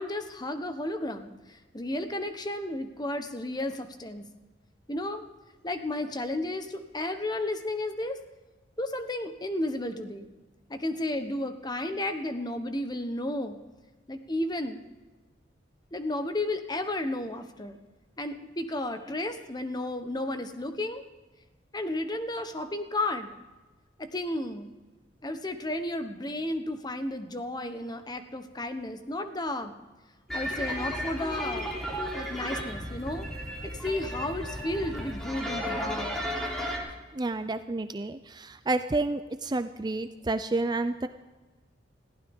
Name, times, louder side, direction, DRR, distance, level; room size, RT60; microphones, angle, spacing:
voice 1, 0.0-4.3 4.9-5.2 5.6-8.2 8.8-10.3 10.7-13.6 14.1-14.8 15.9-17.8 18.2-21.0 21.7-23.3 24.0-24.7 25.2-29.7 30.3-31.8 32.1-33.3 33.7-36.1, left 1 dB, 20° left, 8 dB, 1.1 m, -33 dB
sound 1, 30.3-36.8, equal, ahead, 3.5 m, -34 dB
voice 2, 37.1-41.1, right 2 dB, 20° right, 10 dB, 0.4 m, -30 dB
21.0 x 15.0 x 3.7 m, 1.2 s
head